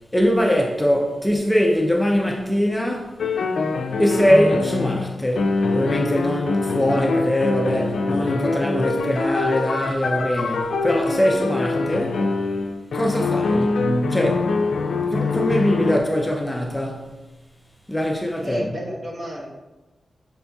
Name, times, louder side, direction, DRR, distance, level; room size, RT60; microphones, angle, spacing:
voice 1, 0.1-3.2 4.0-12.3 12.9-14.6 15.0-17.1 17.9-18.7, equal, 10° left, 0.4 m, -22 dB
sound 1, 3.2-16.0, left 3 dB, 80° left, 0.4 m, -24 dB
voice 2, 18.4-19.5, equal, 50° right, 1.0 m, -32 dB
6.0 x 3.9 x 2.3 m
wide cardioid pair, 130°, 0 cm